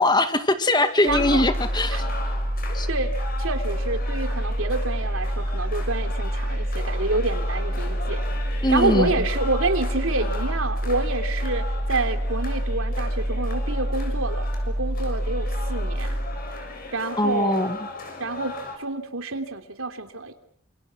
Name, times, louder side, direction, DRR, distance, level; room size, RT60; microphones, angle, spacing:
voice 1, 0.0-2.1 2.7-2.9 8.6-9.1 17.2-17.8, left 2 dB, 20° left, 8 dB, 2.1 m, -21 dB
sound 1, 1.0-18.8, left 3 dB, 45° left, 6.8 m, -38 dB
sound 2, 1.1-16.8, equal, 50° right, 2.9 m, -27 dB
voice 2, 1.1-1.4 1.9-2.0 2.9-3.1 3.4-8.2 8.7-16.2 16.9-17.7 18.2-20.4, right 3 dB, 90° right, 6 dB, 3.2 m, -28 dB
29.0 x 27.0 x 6.2 m, 0.63 s
head